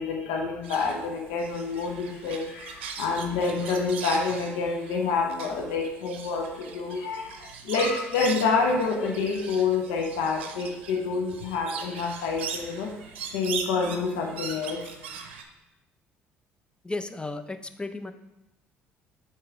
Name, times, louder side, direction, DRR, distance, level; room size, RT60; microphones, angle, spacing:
voice 1, 0.0-12.9 13.3-14.8, left 4 dB, 75° left, 2 dB, 0.8 m, -28 dB
sound 1, 0.6-15.4, right 6 dB, 85° right, 0.6 m, -40 dB
voice 2, 16.8-18.1, left 2 dB, 15° left, 9 dB, 0.6 m, -34 dB
7.6 x 3.1 x 4.8 m, 0.95 s
hypercardioid pair, 55°, 6 cm